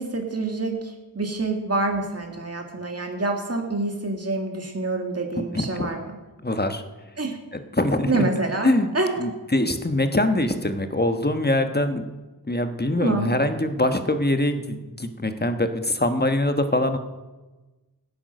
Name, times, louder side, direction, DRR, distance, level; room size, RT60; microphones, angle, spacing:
voice 1, 0.0-6.1 7.2-7.4 8.1-9.1 13.0-13.3, right 2 dB, 40° right, 2 dB, 1.8 m, -27 dB
voice 2, 5.3-5.9 6.4-6.8 7.5-8.3 8.6-8.9 9.2-12.1 12.5-17.0, left 1 dB, 25° left, 8 dB, 1.2 m, -23 dB
16.0 x 8.7 x 6.5 m, 1.2 s
wide cardioid pair, 55°, 39 cm